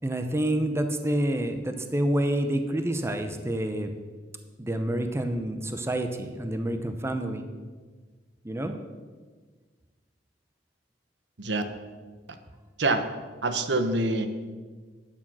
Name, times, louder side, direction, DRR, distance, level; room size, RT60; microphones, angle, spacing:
voice 1, 0.0-3.9 4.6-7.5 8.4-8.7, right 1 dB, 15° right, 7 dB, 0.8 m, -28 dB
voice 2, 13.4-14.3, right 2 dB, 75° right, 8 dB, 1.1 m, -25 dB
11.5 x 9.0 x 6.1 m, 1.5 s
head